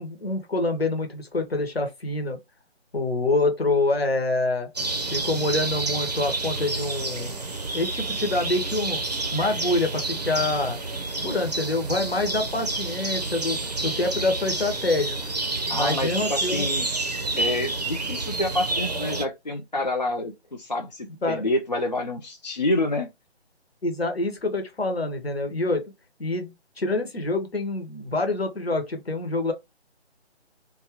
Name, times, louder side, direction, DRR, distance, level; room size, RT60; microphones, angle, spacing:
voice 1, 0.0-2.4 2.9-4.7 5.1-7.4 7.7-9.0 9.3-10.8 11.2-15.2 15.7-16.7 21.2-21.4 23.8-25.9 26.2-26.5 26.8-29.5, left 2 dB, 65° left, 1.0 m, -26 dB
sound 1, 4.8-19.3, right 3 dB, 40° right, 0.6 m, -29 dB
voice 2, 15.7-16.9 17.4-23.1, left 2 dB, 40° left, 0.4 m, -28 dB
2.8 x 2.3 x 2.9 m
figure-of-eight pair, 155°, 33 cm